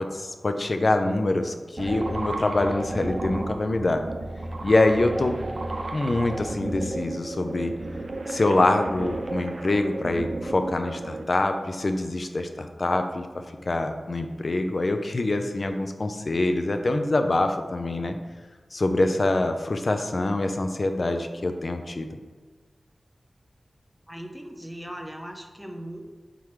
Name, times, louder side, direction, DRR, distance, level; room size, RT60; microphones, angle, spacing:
voice 1, 0.0-4.0 4.6-5.4 5.9-7.7 8.3-18.2 18.7-22.1, left 2 dB, 50° left, 6 dB, 0.6 m, -25 dB
sound 1, 1.8-11.2, right 2 dB, 55° right, 0.6 m, -33 dB
voice 2, 24.1-26.0, right 1 dB, ahead, 2 dB, 0.8 m, -38 dB
10.5 x 3.8 x 3.2 m, 1.4 s
wide cardioid pair, 95°, 0 cm